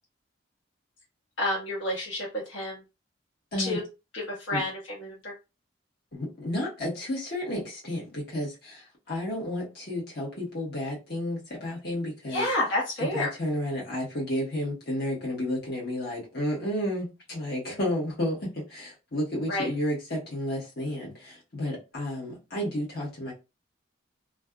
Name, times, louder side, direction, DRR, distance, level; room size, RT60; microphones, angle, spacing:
voice 1, 1.4-2.8 3.6-3.8 4.3-4.7 5.0-5.3 12.3-13.3 19.5-19.7, left 1 dB, 90° left, 1.1 m, -29 dB
voice 2, 6.1-12.5 13.0-23.3, left 1 dB, 60° left, 1.2 m, -32 dB
2.6 x 2.4 x 2.3 m
head